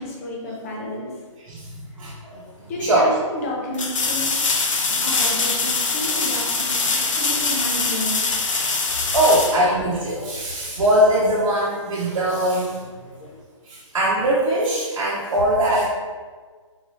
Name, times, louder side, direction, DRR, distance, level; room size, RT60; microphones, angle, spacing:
voice 1, 0.0-1.2 2.7-4.4 5.0-8.3, left 1 dB, 30° left, -2 dB, 0.8 m, -31 dB
voice 2, 1.4-2.4 2.8-3.1 9.1-12.8 13.7-15.8, right 1 dB, 75° right, -7 dB, 0.9 m, -21 dB
sound 1, 2.4-2.5 3.7-10.3 13.2-13.3, left 4 dB, 75° left, 0.7 m, -23 dB
3.9 x 2.9 x 2.8 m, 1.5 s
hypercardioid pair, 160°, 17 cm